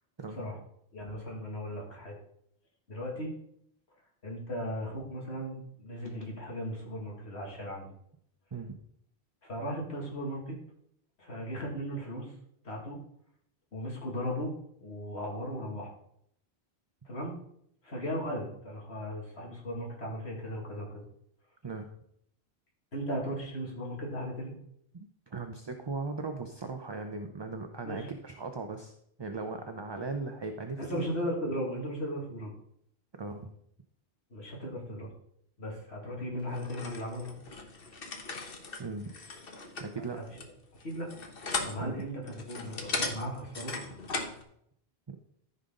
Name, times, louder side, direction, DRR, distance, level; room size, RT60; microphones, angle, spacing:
voice 1, 0.9-2.2 2.9-3.4 4.2-7.9 9.4-10.6 11.2-12.3 12.6-13.0 13.7-15.9 17.0-17.4 17.8-21.0 22.9-24.5 27.8-28.1 30.8-32.5 34.3-35.1 35.6-37.3 40.1-40.4 40.7-41.1 41.6-43.7, equal, 85° left, -2 dB, 2.7 m, -37 dB
voice 2, 24.9-28.9 29.2-31.1 33.2-33.5 38.8-39.1 39.8-40.2 41.8-42.0 45.1-45.2, right 3 dB, 30° right, 5 dB, 0.6 m, -38 dB
sound 1, 36.5-44.4, left 3 dB, 60° left, 1.3 m, -38 dB
14.0 x 5.4 x 3.8 m, 0.72 s
omnidirectional pair, 1.1 m